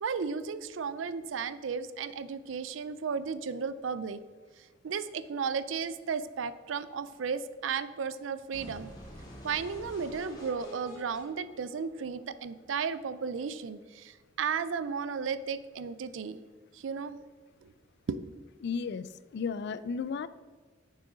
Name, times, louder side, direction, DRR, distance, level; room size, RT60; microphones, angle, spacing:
voice 1, 0.0-4.2 4.8-8.9 9.4-14.1 14.4-16.4 16.8-17.2 18.1-18.2, right 6 dB, 85° right, 14 dB, 0.4 m, -34 dB
sound 1, 8.5-12.5, equal, 20° left, 1.8 m, -48 dB
voice 2, 18.6-20.3, left 5 dB, 60° left, 15 dB, 0.3 m, -34 dB
6.3 x 6.2 x 3.9 m, 1.5 s
head